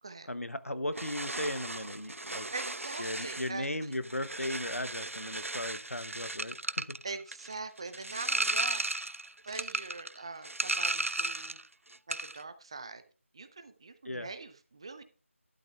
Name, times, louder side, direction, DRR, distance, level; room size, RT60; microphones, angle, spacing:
voice 1, 0.3-2.5 3.0-7.0 14.0-14.3, left 1 dB, 85° left, 0.8 m, -37 dB
sound 1, 0.9-11.7 11.9-12.4, right 2 dB, 70° right, 0.5 m, -35 dB
voice 2, 2.5-3.9 7.0-8.8 9.4-11.6 12.1-13.0 13.3-15.0, right 4 dB, 20° right, 0.7 m, -43 dB
12.5 x 11.5 x 2.3 m
figure-of-eight pair, 165°, 7 cm